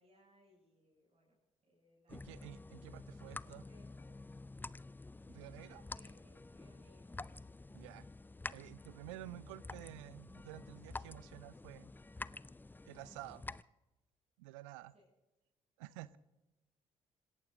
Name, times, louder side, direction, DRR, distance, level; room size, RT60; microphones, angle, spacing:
voice 1, 0.0-1.4 1.6-2.3 3.2-4.2 5.7-7.2 14.9-15.1, equal, 40° right, -4 dB, 7.4 m, -68 dB
sound 1, 2.1-13.6, left 2 dB, 10° left, 0.5 m, -49 dB
voice 2, 2.1-3.6 5.3-5.8 7.7-8.1 8.5-11.9 12.8-13.4 14.4-14.9 15.8-16.2, right 17 dB, 75° right, 21 dB, 0.6 m, -51 dB
26.5 x 14.0 x 3.9 m, 1.0 s
figure-of-eight pair, 45°, 17 cm